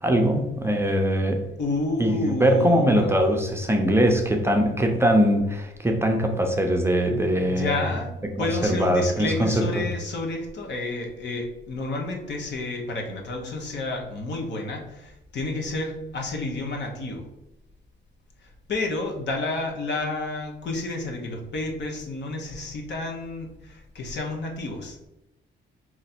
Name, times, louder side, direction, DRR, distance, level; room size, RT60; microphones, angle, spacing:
voice 1, 0.0-1.4 2.0-7.8 8.4-9.9, equal, 10° right, 2 dB, 0.7 m, -22 dB
voice 2, 1.6-3.1 7.5-17.2 18.4-25.1, left 2 dB, 60° left, 2 dB, 1.1 m, -30 dB
3.8 x 3.1 x 4.3 m, 0.93 s
cardioid pair, 90°, 20 cm